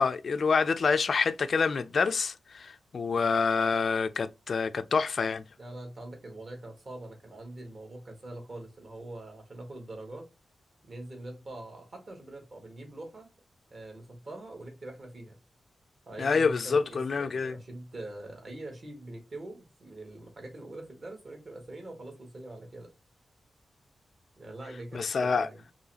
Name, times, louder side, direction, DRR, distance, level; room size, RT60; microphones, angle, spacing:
voice 1, 0.0-5.4 16.2-17.6 24.9-25.5, left 5 dB, 55° left, 0.3 m, -27 dB
voice 2, 5.6-10.2 10.8-13.3 13.7-15.3 16.1-22.9 24.4-25.6, right 2 dB, 45° right, 1.5 m, -43 dB
3.9 x 3.0 x 2.8 m
wide cardioid pair, 130°, 0 cm